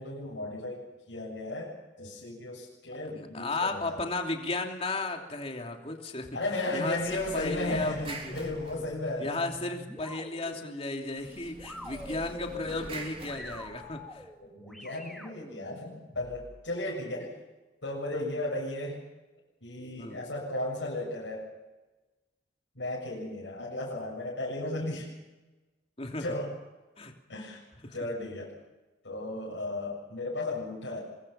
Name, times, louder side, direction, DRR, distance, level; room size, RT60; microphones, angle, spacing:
voice 1, 0.0-4.0 6.3-9.4 14.5-17.4 17.8-19.0 19.6-21.5 22.8-25.1 26.2-26.5 27.3-27.6 27.9-28.5 29.0-31.0, left 2 dB, 85° left, -3 dB, 7.2 m, -35 dB
voice 2, 3.1-6.3 6.7-8.3 9.2-14.3 20.0-20.2 26.0-26.2 27.0-27.1 27.8-28.0, left 2 dB, 35° left, 2 dB, 3.0 m, -34 dB
sound 1, 6.9-9.4 11.1-14.2, right 2 dB, 30° right, 3.6 m, -45 dB
sound 2, 8.0-16.6, left 1 dB, ahead, 4.1 m, -46 dB
24.0 x 23.0 x 5.7 m, 1.1 s
head